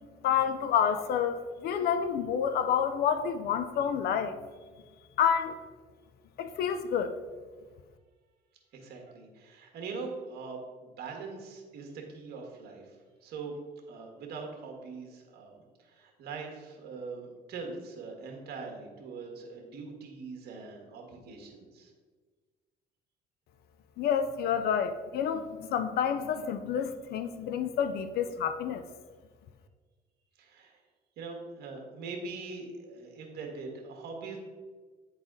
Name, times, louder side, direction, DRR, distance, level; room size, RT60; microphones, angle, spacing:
voice 1, 0.2-4.4 5.2-5.6 6.4-7.1 24.0-28.8, left 8 dB, 65° left, 10 dB, 0.5 m, -29 dB
voice 2, 8.7-13.0 13.2-13.6 13.9-21.9 30.4-30.8 31.2-34.4, right 4 dB, 70° right, 1 dB, 1.6 m, -42 dB
9.3 x 4.0 x 3.7 m, 1.4 s
cardioid pair, 110°, 17 cm